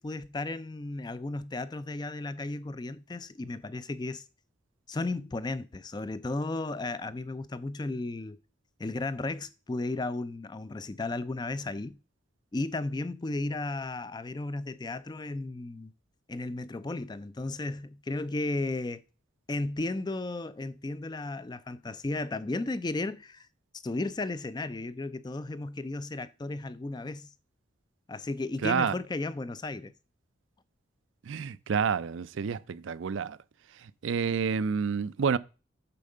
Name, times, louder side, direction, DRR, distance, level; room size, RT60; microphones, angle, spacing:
voice 1, 0.0-4.2 4.9-8.4 8.8-12.0 12.5-15.9 16.3-19.0 19.5-23.5 23.8-27.3 28.1-29.9, left 2 dB, 20° left, 0.4 m, -34 dB
voice 2, 28.6-28.9 31.3-33.4 34.0-35.4, right 6 dB, 70° right, 0.4 m, -29 dB
8.5 x 4.4 x 6.6 m
head